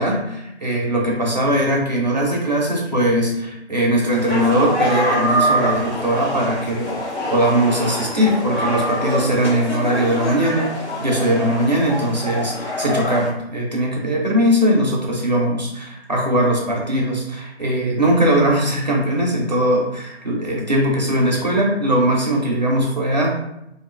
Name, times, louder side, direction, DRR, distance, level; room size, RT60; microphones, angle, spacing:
voice 1, 0.0-23.4, right 1 dB, 40° right, -3 dB, 0.6 m, -20 dB
sound 1, 4.1-13.3, equal, 80° left, 1.1 m, -25 dB
2.6 x 2.2 x 2.4 m, 0.83 s
figure-of-eight pair, 165°, 34 cm